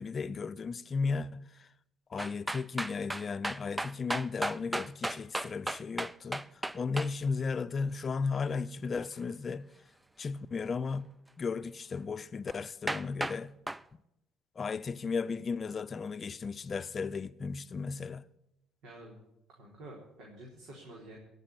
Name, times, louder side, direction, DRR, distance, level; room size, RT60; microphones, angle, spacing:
voice 1, 0.0-1.7 2.1-6.4 6.7-9.7 10.2-11.1 11.4-13.5 14.5-18.3, left 5 dB, 40° left, 0.7 m, -35 dB
sound 1, 2.2-7.1 12.5-12.6 12.9-13.4 13.7-13.8, right 1 dB, 10° right, 0.5 m, -34 dB
voice 2, 18.8-19.2 19.5-21.2, right 1 dB, 65° right, 4.1 m, -50 dB
17.5 x 7.0 x 8.8 m
supercardioid pair, 70°, 0 cm